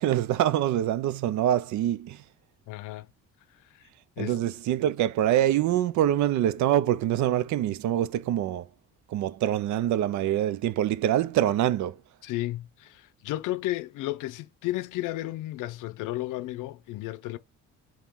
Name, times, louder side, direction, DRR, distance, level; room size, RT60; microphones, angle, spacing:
voice 1, 0.0-2.2 4.2-8.7 9.1-12.0, right 12 dB, 70° right, 0.5 m, -25 dB
voice 2, 2.7-3.1 3.7-3.8 4.2-4.4 12.2-17.4, left 16 dB, 80° left, 0.6 m, -33 dB
3.6 x 2.8 x 4.5 m
cardioid pair, 125°, 31 cm